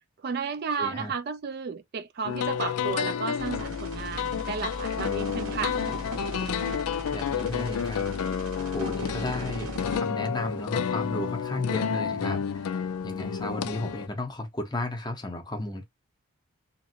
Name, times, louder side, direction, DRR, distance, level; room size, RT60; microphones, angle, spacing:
voice 1, 0.2-5.8, right 5 dB, 45° right, 0.3 m, -33 dB
voice 2, 0.8-1.1 7.1-8.1 8.7-15.8, left 1 dB, 20° left, 0.7 m, -34 dB
sound 1, 2.2-14.1, left 7 dB, 85° left, 0.4 m, -30 dB
sound 2, 3.4-10.0, equal, 85° right, 1.3 m, -37 dB
2.8 x 2.5 x 2.8 m
head